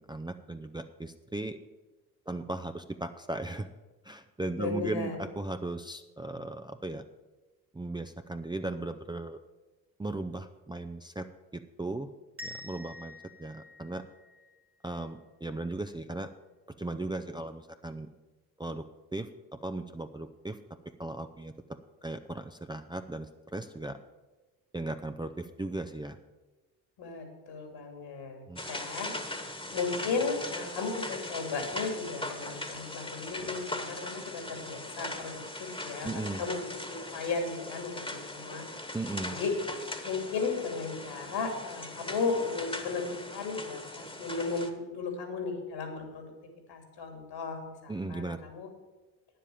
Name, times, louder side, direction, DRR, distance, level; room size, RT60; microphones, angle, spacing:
voice 1, 0.0-1.6 2.3-3.7 4.0-7.0 7.7-9.4 10.0-11.3 11.5-12.1 12.4-13.1 13.4-14.0 14.8-16.3 16.8-18.1 18.6-18.8 19.1-20.6 21.0-21.5 22.0-24.0 24.7-26.2 28.5-28.6 36.0-36.4 38.9-39.4 47.9-48.4, right 2 dB, 10° right, 7 dB, 0.6 m, -37 dB
voice 2, 4.6-5.2 27.0-38.7 39.2-39.5 40.0-46.3 46.7-48.7, left 4 dB, 65° left, 4 dB, 2.8 m, -35 dB
sound 1, 12.4-15.2, left 1 dB, 25° right, 1.8 m, -47 dB
sound 2, 28.6-44.7, left 1 dB, 10° left, 1.5 m, -40 dB
9.7 x 7.7 x 7.0 m, 1.2 s
hypercardioid pair, 50°, 47 cm